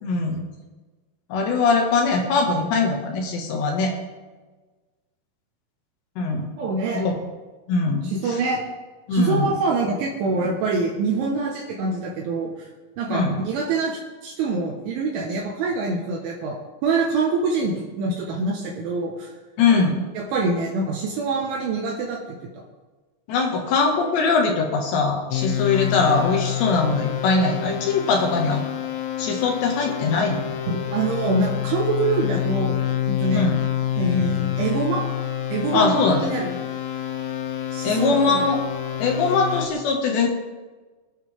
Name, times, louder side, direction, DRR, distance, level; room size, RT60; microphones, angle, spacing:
voice 1, 0.0-0.4 1.3-3.9 6.2-6.5 6.9-7.2 7.7-8.4 9.1-9.5 13.1-13.4 19.6-20.0 23.3-28.6 29.2-30.4 33.3-33.5 35.7-36.3 37.8-38.6 39.0-40.3, left 4 dB, 65° left, 1 dB, 3.9 m, -21 dB
voice 2, 6.6-7.1 8.0-8.6 9.1-12.5 13.0-16.6 16.8-19.3 20.2-22.2 22.5-22.6 30.7-33.5 34.0-35.1 35.5-36.6 37.7-38.4, right 3 dB, 75° right, -3 dB, 3.8 m, -25 dB
sound 1, 25.3-39.7, left 11 dB, 80° left, 3.6 m, -27 dB
24.0 x 9.9 x 3.7 m, 1.3 s
omnidirectional pair, 5.8 m